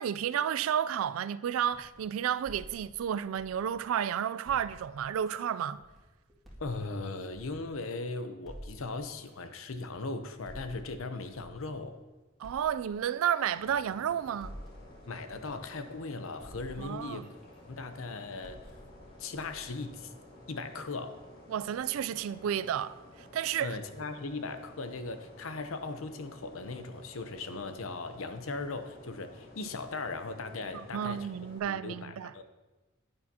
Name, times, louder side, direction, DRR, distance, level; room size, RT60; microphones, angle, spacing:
voice 1, 0.0-5.8 12.4-14.6 16.8-17.2 21.5-23.0 23.3-23.8 30.7-32.3, right 9 dB, 75° right, 0.3 m, -31 dB
sound 1, 1.6-4.0 4.4-8.0 8.4-12.0 12.4-16.1 16.4-20.5, equal, ahead, 2.0 m, -52 dB
voice 2, 6.6-12.0 15.1-17.2 17.7-18.6 19.2-20.1 20.5-21.2 23.6-31.3 31.6-32.4, left 3 dB, 70° left, 0.7 m, -38 dB
sound 2, 13.5-31.6, left 2 dB, 50° left, 2.0 m, -53 dB
10.5 x 9.7 x 2.8 m
head